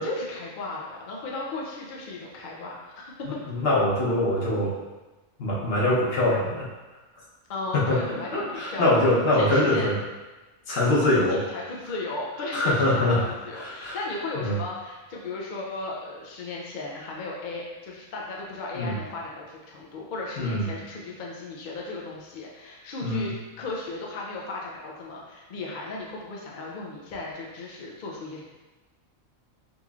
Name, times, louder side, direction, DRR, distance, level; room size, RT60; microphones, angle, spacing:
voice 1, 0.0-3.1 7.5-9.0 9.3-9.9 11.3-28.4, left 2 dB, 65° left, -3 dB, 0.4 m, -35 dB
voice 2, 3.5-4.7 5.4-6.7 7.7-8.0 8.3-10.0 10.7-11.4 12.5-13.2 13.5-14.0 14.4-14.6 18.8-18.9 20.4-20.6 23.0-23.3, left 1 dB, 50° left, -5 dB, 1.0 m, -23 dB
3.8 x 3.0 x 2.4 m, 1.2 s
omnidirectional pair, 1.4 m